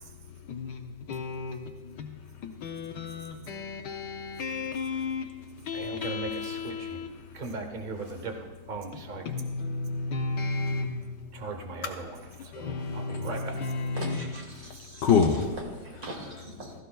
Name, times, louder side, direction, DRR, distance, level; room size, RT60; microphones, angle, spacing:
voice 1, 0.5-2.2 2.4-5.3 5.6-7.2 8.0-8.2 9.2-11.4 11.8-12.0 12.4-14.2 15.0-15.4, left 5 dB, 70° left, 4 dB, 1.2 m, -31 dB
voice 2, 5.7-7.0 7.3-8.3 8.7-9.5 11.3-12.2 12.5-13.6, right 4 dB, 80° right, 4 dB, 0.4 m, -38 dB
voice 3, 13.9-15.4 15.8-16.7, right 1 dB, 60° right, 0 dB, 2.8 m, -41 dB
16.0 x 15.0 x 2.3 m, 1.3 s
omnidirectional pair, 2.3 m